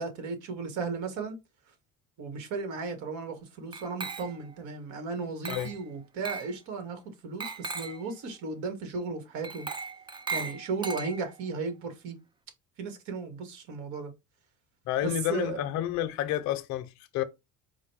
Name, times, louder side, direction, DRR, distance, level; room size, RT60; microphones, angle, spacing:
voice 1, 0.0-1.4 2.2-9.7 10.3-12.2 12.8-14.1 15.0-15.7, right 4 dB, 70° right, 1.5 m, -35 dB
Glass, 3.7-4.6 5.4-5.8 6.2-6.5 7.4-8.1 9.4-11.5, right 4 dB, 15° right, 0.4 m, -37 dB
voice 2, 14.9-17.2, left 12 dB, 70° left, 0.6 m, -30 dB
4.7 x 2.2 x 4.6 m
cardioid pair, 110°, 30 cm